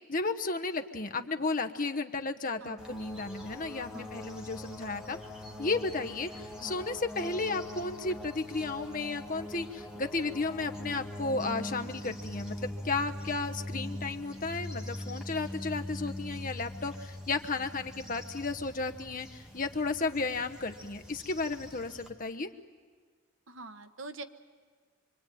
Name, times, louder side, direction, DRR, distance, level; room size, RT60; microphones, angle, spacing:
voice 1, 0.1-5.2 5.6-22.5, left 3 dB, 40° left, 6 dB, 1.1 m, -33 dB
sound 1, 2.8-22.1, left 1 dB, 5° right, 1.9 m, -42 dB
voice 2, 3.9-4.3 6.6-6.9 23.5-24.2, right 2 dB, 65° right, 9 dB, 1.2 m, -46 dB
26.5 x 24.0 x 9.3 m, 1.5 s
head